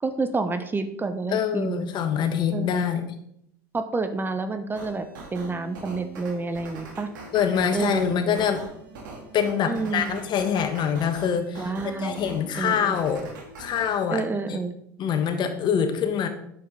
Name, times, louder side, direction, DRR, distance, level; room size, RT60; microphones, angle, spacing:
voice 1, 0.0-1.9 2.5-2.9 3.7-5.0 5.3-7.1 7.7-8.3 9.7-10.2 11.6-12.3 12.6-13.0 14.1-14.7, right 3 dB, 20° right, 9 dB, 0.8 m, -29 dB
voice 2, 1.3-3.0 7.3-8.6 9.3-11.7 12.0-13.3 13.6-14.2 14.5-14.6 15.0-16.3, left 8 dB, 45° left, 7 dB, 1.3 m, -25 dB
sound 1, 4.8-13.9, right 3 dB, 80° right, 2.1 m, -42 dB
9.1 x 6.8 x 3.8 m, 0.73 s
hypercardioid pair, 80°, 10 cm